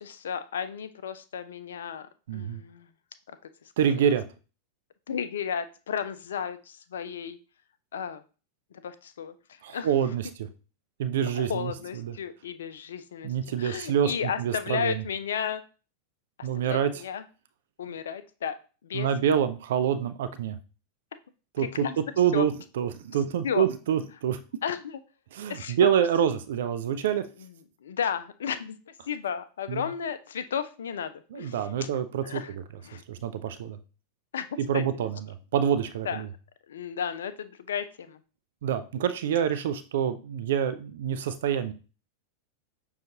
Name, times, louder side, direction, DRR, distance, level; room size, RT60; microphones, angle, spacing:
voice 1, 0.0-2.1 2.3-2.9 5.1-7.4 7.9-8.2 8.8-9.3 9.7-9.9 11.3-13.3 13.6-15.6 16.4-17.2 17.8-18.6 18.8-19.1 21.6-22.0 22.3-22.5 23.4-23.7 24.6-25.0 25.5-25.9 27.8-28.8 29.1-31.9 32.2-32.5 32.8-33.0 34.3-34.5 34.7-34.8 36.0-36.2 36.7-38.2, left 7 dB, 65° left, 11 dB, 0.3 m, -33 dB
voice 2, 2.3-2.6 3.8-4.2 9.6-10.5 11.0-12.1 13.2-15.0 16.4-16.9 18.9-20.6 21.6-21.9 22.2-24.4 25.3-27.3 29.7-29.8 31.3-32.6 33.1-33.8 34.6-36.3 38.6-41.7, right 9 dB, 60° right, 12 dB, 0.4 m, -27 dB
6.3 x 2.4 x 2.8 m, 0.35 s
figure-of-eight pair, 90°, 0 cm